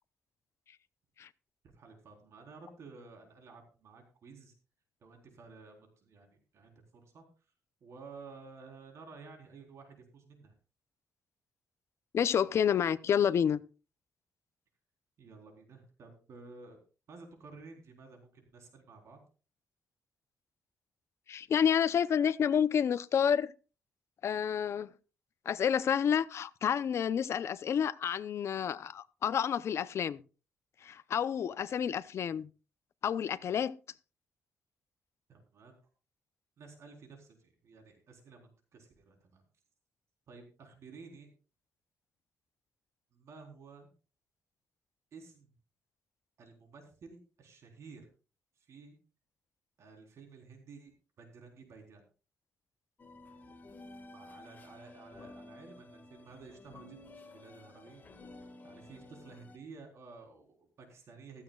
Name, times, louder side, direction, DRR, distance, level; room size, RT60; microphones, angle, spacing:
voice 1, 1.7-4.5 5.0-7.2 7.8-10.5 15.2-16.8 17.1-19.2 35.3-35.7 36.6-39.4 40.3-41.3 43.1-43.9 45.1-45.5 46.4-48.1 48.6-49.0 49.8-52.0 54.0-61.4, right 4 dB, 60° right, 4.1 m, -53 dB
voice 2, 12.1-13.6 21.3-23.5 24.2-24.9 25.5-30.2 30.8-32.5 33.0-33.7, left 8 dB, 55° left, 0.7 m, -29 dB
sound 1, 53.0-59.6, left 2 dB, 30° left, 1.9 m, -53 dB
15.5 x 14.5 x 2.4 m
cardioid pair, 140°, 6 cm